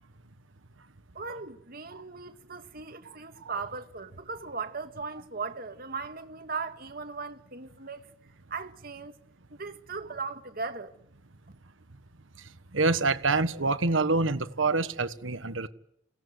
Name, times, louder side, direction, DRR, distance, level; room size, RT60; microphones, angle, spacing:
voice 1, 1.1-8.0 8.5-9.2 9.5-10.9, right 4 dB, 50° right, 1.9 m, -38 dB
voice 2, 12.7-15.7, right 3 dB, 80° right, 1.4 m, -26 dB
28.0 x 17.0 x 9.6 m
head